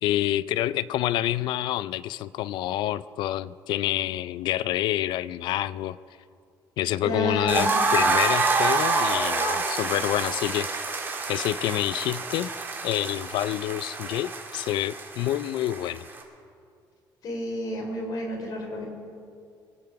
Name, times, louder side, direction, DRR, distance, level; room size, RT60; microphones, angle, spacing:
voice 1, 0.0-6.0 6.8-10.7 11.3-12.5 12.8-16.1, left 13 dB, 70° left, 17 dB, 0.4 m, -27 dB
voice 2, 7.0-7.8 17.2-18.8, equal, 50° left, 1 dB, 3.8 m, -30 dB
sound 1, 7.5-16.2, right 3 dB, 25° right, 2.0 m, -27 dB
23.0 x 8.6 x 5.9 m, 2.3 s
cardioid pair, 140°, 8 cm